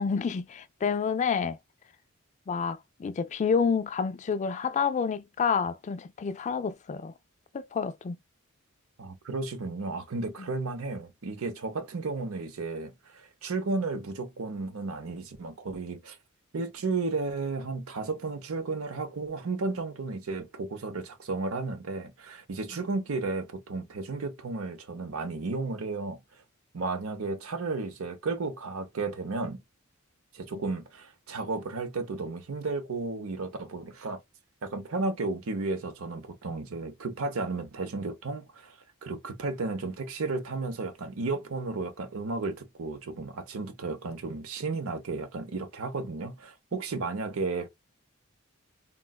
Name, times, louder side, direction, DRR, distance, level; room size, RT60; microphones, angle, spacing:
voice 1, 0.0-1.6 2.5-7.1 7.5-8.2 10.4-10.5, left 6 dB, 35° left, 0.3 m, -29 dB
voice 2, 9.0-16.2 16.5-26.2 26.7-29.6 30.3-34.2 34.6-47.7, right 3 dB, 75° right, 0.7 m, -33 dB
3.7 x 2.2 x 2.2 m
head